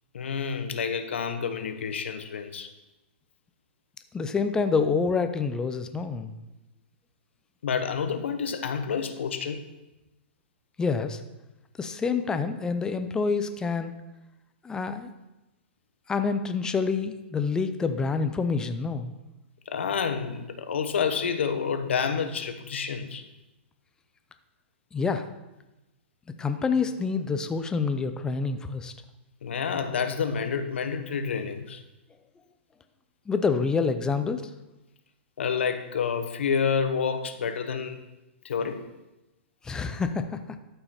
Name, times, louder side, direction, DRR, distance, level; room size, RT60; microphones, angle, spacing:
voice 1, 0.1-2.7 7.6-9.6 19.7-23.3 29.4-31.8 35.4-38.0 38.4-38.9, left 6 dB, 85° left, 8 dB, 1.0 m, -29 dB
voice 2, 4.1-6.3 10.8-11.2 11.8-14.0 14.6-15.1 16.1-19.1 24.9-25.3 26.4-28.9 33.3-34.5 39.6-40.4, left 5 dB, 10° left, 9 dB, 0.6 m, -27 dB
12.5 x 5.6 x 4.2 m, 1.0 s
hypercardioid pair, 145°, 6 cm